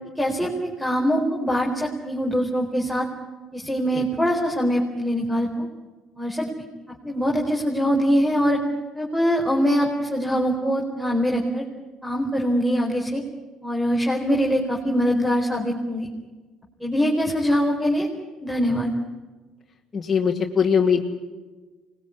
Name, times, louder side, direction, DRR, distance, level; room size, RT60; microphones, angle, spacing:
voice 1, 0.2-3.1 3.5-5.7 6.2-6.5 7.0-8.6 8.9-11.6 12.0-13.2 13.6-16.1 16.8-18.1 18.4-18.9, equal, ahead, 0 dB, 4.4 m, -23 dB
voice 2, 19.9-21.0, left 6 dB, 25° left, -3 dB, 2.5 m, -21 dB
25.0 x 21.0 x 9.9 m, 1.3 s
supercardioid pair, 90°, 0 cm